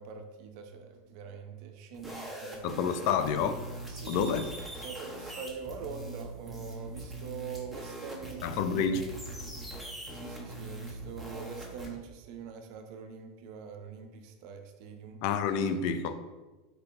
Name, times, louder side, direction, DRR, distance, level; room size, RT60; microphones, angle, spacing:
voice 1, 0.0-2.8 3.9-4.4 4.8-9.1 10.1-15.2, right 6 dB, 60° right, 0.6 m, -44 dB
sound 1, 1.9-11.9, right 2 dB, 5° left, 1.3 m, -42 dB
voice 2, 2.6-3.6 4.1-4.5 8.4-9.1 15.2-16.1, left 6 dB, 60° left, 0.4 m, -29 dB
4.4 x 4.0 x 2.7 m
hypercardioid pair, 105°, 0 cm